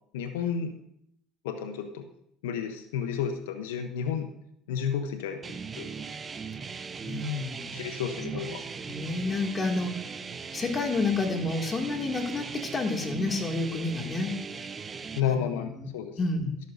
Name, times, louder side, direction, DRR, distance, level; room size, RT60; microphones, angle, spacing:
voice 1, 0.1-0.7 1.4-2.1 2.4-4.3 4.7-5.9 7.7-8.6 15.2-16.2, left 7 dB, 90° left, 7 dB, 0.8 m, -31 dB
sound 1, 5.4-15.2, right 5 dB, 30° right, 0.7 m, -39 dB
voice 2, 7.0-7.8 8.3-8.4 8.8-10.0 10.5-14.3 15.2-15.9 16.2-16.6, left 3 dB, 30° left, 3 dB, 2.2 m, -30 dB
12.5 x 12.5 x 2.6 m, 0.74 s
supercardioid pair, 90°, 0 cm